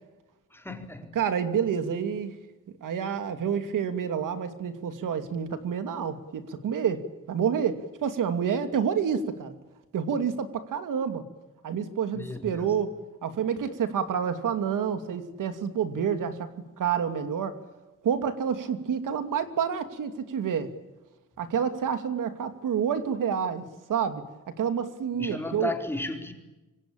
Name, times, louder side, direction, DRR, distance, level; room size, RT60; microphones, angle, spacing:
voice 1, 0.5-1.2 12.1-12.7 25.2-26.3, left 1 dB, 5° left, 4.3 m, -34 dB
voice 2, 1.1-2.4 2.8-9.5 9.9-11.2 11.6-12.9 13.2-16.5 16.8-17.6 18.0-20.7 21.4-24.2 24.6-25.7, right 7 dB, 75° right, 2.7 m, -28 dB
27.0 x 24.5 x 8.8 m
cardioid pair, 130°, 32 cm